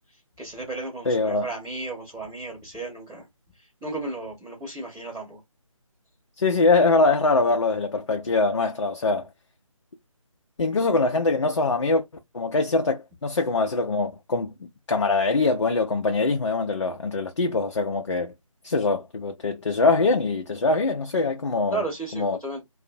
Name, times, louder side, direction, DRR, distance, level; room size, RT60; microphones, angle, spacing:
voice 1, 0.4-3.2 3.8-5.4 21.7-22.6, right 3 dB, 5° right, 0.5 m, -34 dB
voice 2, 1.1-1.5 6.4-9.3 10.6-12.0 12.3-18.3 18.6-21.8 22.1-22.4, left 3 dB, 55° left, 0.4 m, -23 dB
2.5 x 2.0 x 2.5 m
figure-of-eight pair, 155°, 18 cm